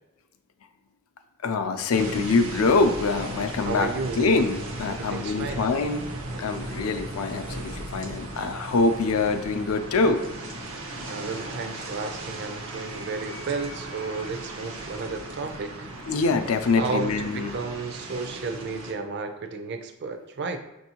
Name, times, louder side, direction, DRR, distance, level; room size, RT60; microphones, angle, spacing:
voice 1, 1.4-3.9 4.2-6.1 6.4-10.2 16.1-17.5, left 3 dB, 85° left, 7 dB, 0.5 m, -24 dB
sound 1, 1.9-18.9, right 1 dB, 85° right, 0.7 m, -37 dB
voice 2, 3.6-4.2 4.9-5.6 11.1-15.9 16.8-17.1 17.3-20.6, right 4 dB, 55° right, 6 dB, 0.5 m, -32 dB
6.1 x 2.6 x 2.8 m, 0.93 s
head